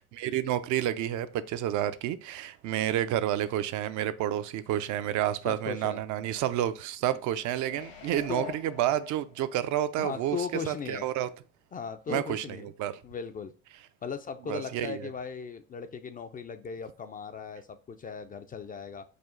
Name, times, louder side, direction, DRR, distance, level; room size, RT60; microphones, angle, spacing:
voice 1, 0.0-10.4 10.7-11.3 12.1-12.4 12.8-13.0 14.5-15.1, right 12 dB, 55° right, 0.5 m, -30 dB
voice 2, 5.4-6.0 8.3-8.5 10.0-11.1 11.7-12.7 13.0-13.5 14.0-19.0, left 6 dB, 25° left, 0.4 m, -37 dB
sound 1, 7.6-9.7 10.1-10.2, left 8 dB, 80° left, 1.5 m, -43 dB
4.9 x 2.3 x 3.7 m
supercardioid pair, 80°, 36 cm